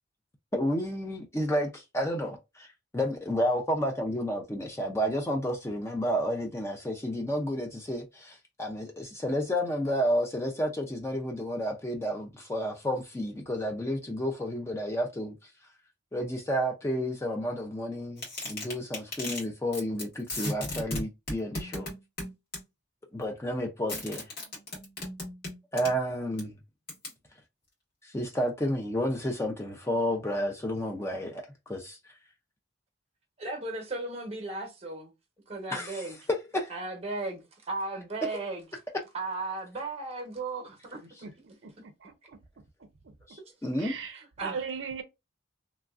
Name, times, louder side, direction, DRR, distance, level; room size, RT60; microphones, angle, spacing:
voice 1, 0.5-2.7 2.9-15.3 16.1-21.9 23.1-24.2 25.7-26.5 28.0-32.0 35.7-36.0 36.3-36.4 43.3-43.9, equal, 15° left, 0.4 m, -31 dB
sound 1, 18.2-19.4 19.7-20.0 20.3-22.6 23.9-25.9 26.4-26.5 26.9-27.1, left 1 dB, 50° left, 1.7 m, -36 dB
voice 2, 33.4-35.1 35.5-36.2 36.7-37.4 37.7-38.7 39.1-41.3 43.4-43.5 44.1-44.6, right 2 dB, 30° right, 0.9 m, -36 dB
voice 3, 41.6-42.4 43.8-45.0, right 5 dB, 65° right, 0.4 m, -38 dB
3.0 x 2.4 x 2.4 m
head